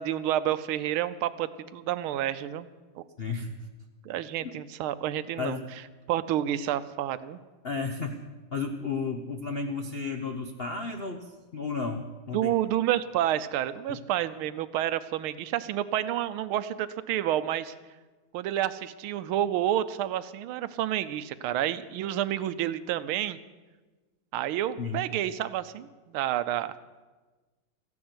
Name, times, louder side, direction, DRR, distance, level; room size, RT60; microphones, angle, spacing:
voice 1, 0.0-2.7 3.0-3.1 4.0-5.6 6.1-7.4 12.3-17.7 18.3-23.4 24.3-26.7, right 12 dB, 80° right, 14 dB, 1.5 m, -29 dB
voice 2, 3.2-3.5 4.4-4.5 5.4-5.6 7.6-8.2 8.5-12.5 13.9-14.0 24.8-25.0, left 4 dB, 60° left, 5 dB, 0.6 m, -33 dB
14.0 x 11.0 x 7.9 m, 1.3 s
omnidirectional pair, 2.4 m